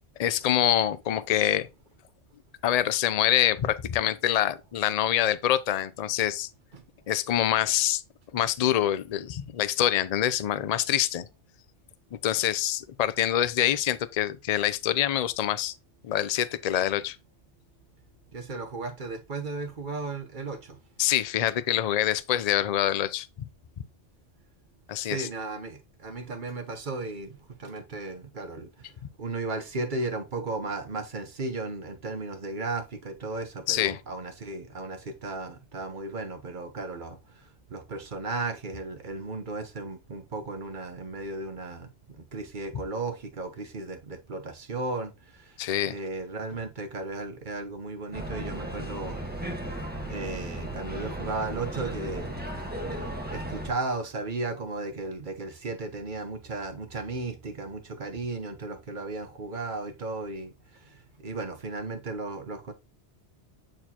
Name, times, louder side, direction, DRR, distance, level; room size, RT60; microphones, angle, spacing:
voice 1, 0.2-1.7 2.6-6.5 7.1-8.0 8.3-11.2 12.2-15.7 16.0-17.2 21.0-23.3 24.9-25.3 33.7-34.0 45.6-46.0, left 11 dB, 50° left, 0.5 m, -25 dB
voice 2, 18.3-20.8 24.9-28.9 29.2-45.6 45.8-49.2 50.1-52.5 52.8-62.7, right 3 dB, 45° right, 1.0 m, -35 dB
sound 1, 48.1-53.7, right 1 dB, 10° right, 1.3 m, -35 dB
8.8 x 4.3 x 2.9 m
omnidirectional pair, 1.2 m